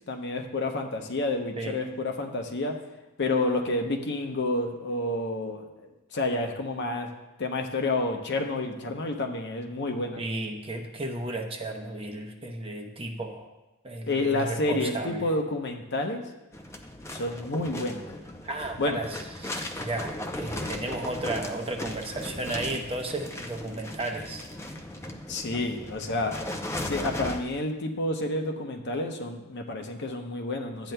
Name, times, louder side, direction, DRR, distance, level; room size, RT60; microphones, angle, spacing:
voice 1, 0.1-2.8 3.2-7.1 7.4-10.2 14.1-16.2 17.1-18.1 18.8-19.0 25.3-26.4 26.8-30.9, left 2 dB, 50° left, 3 dB, 0.8 m, -29 dB
voice 2, 10.2-13.5 13.8-15.2 18.4-24.4, right 2 dB, 25° right, 3 dB, 0.7 m, -34 dB
sound 1, 16.5-27.4, left 1 dB, 15° left, 0.5 m, -37 dB
12.0 x 8.9 x 2.2 m, 1.0 s
head